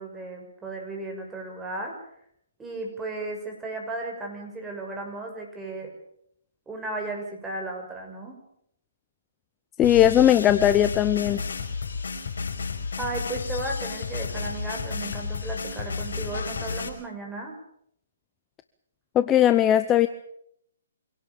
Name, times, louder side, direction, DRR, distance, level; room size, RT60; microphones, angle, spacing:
voice 1, 0.0-2.0 2.6-5.9 6.7-8.4 13.0-17.6, right 2 dB, 10° right, 1 dB, 6.2 m, -35 dB
sound 1, 9.8-16.9, left 5 dB, 70° left, 5.3 m, -32 dB
voice 2, 9.8-11.4 19.1-20.1, left 11 dB, 20° left, 11 dB, 0.8 m, -19 dB
26.0 x 17.5 x 7.2 m, 0.72 s
hypercardioid pair, 140°, 0 cm